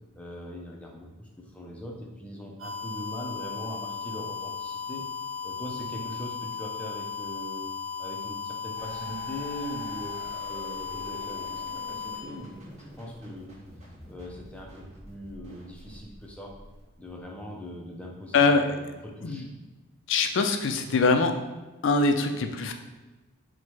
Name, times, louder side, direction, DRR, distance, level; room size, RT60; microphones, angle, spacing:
voice 1, 0.1-5.1 5.4-7.6 8.0-10.2 10.5-13.6 14.1-16.5 17.0-18.4 18.7-19.5, equal, 5° left, -1 dB, 0.5 m, -41 dB
sound 1, 2.6-12.2, left 6 dB, 70° right, 1.1 m, -36 dB
sound 2, 8.8-17.2, right 1 dB, 30° right, 1.1 m, -47 dB
voice 2, 18.3-18.6 19.2-19.5 20.1-21.3 21.8-22.7, left 3 dB, 60° left, 6 dB, 0.4 m, -23 dB
4.3 x 2.1 x 4.5 m, 1.2 s
head